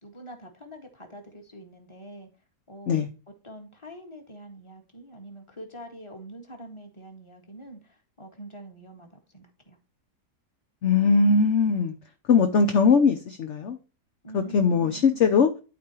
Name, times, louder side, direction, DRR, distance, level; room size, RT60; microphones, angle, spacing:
voice 1, 0.0-2.3 2.7-3.1 3.4-9.8 14.2-15.2, right 1 dB, 15° left, 1.8 m, -45 dB
voice 2, 10.8-11.9 12.3-13.8 14.3-15.5, left 5 dB, 50° left, 0.9 m, -20 dB
12.5 x 4.4 x 3.0 m
omnidirectional pair, 1.9 m